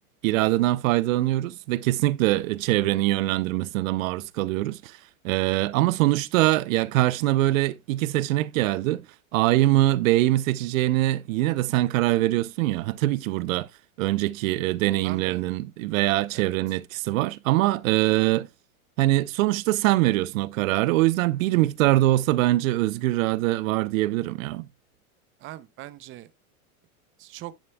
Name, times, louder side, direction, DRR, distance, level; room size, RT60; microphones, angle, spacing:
voice 1, 0.2-5.0 5.2-9.0 9.3-13.7 14.0-18.5 19.0-24.7, right 16 dB, 65° right, 0.7 m, -23 dB
voice 2, 15.0-15.4 16.3-16.8 25.4-26.3 27.2-27.5, right 15 dB, 30° right, 0.6 m, -41 dB
10.0 x 9.1 x 2.2 m
hypercardioid pair, 105°, 44 cm